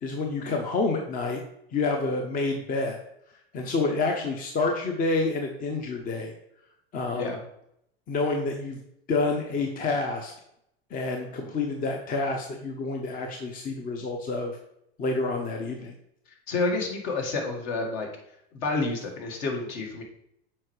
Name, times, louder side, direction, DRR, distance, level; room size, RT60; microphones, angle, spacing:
voice 1, 0.0-1.4 1.7-3.0 3.5-6.3 6.9-7.3 8.1-8.8 9.1-10.3 10.9-14.6 15.0-15.9, left 3 dB, 25° left, 3 dB, 0.8 m, -28 dB
voice 2, 16.5-18.1 18.5-20.0, left 3 dB, 55° left, 2 dB, 1.7 m, -29 dB
7.3 x 4.5 x 3.2 m, 0.77 s
hypercardioid pair, 110°, 31 cm